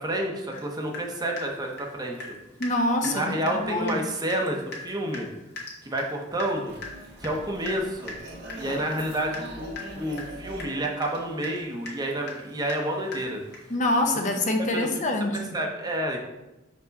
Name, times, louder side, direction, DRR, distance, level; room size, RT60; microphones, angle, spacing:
voice 1, 0.0-2.3 3.0-5.3 5.8-6.8 7.2-8.1 8.5-13.4 14.6-16.2, right 1 dB, 20° right, 1 dB, 0.8 m, -30 dB
Water tap faucet / Drip, 0.5-0.7 0.9-2.4 2.6-2.8 3.0-3.2 3.5-3.6 3.9-4.0 4.3-13.8, left 3 dB, 55° left, 1.4 m, -40 dB
voice 2, 2.6-4.0 8.7-8.8 13.7-15.4, left 1 dB, 40° left, 4 dB, 0.7 m, -25 dB
sound 1, 6.7-11.8, right 1 dB, 55° right, 1.4 m, -43 dB
6.3 x 4.5 x 4.1 m, 1.0 s
head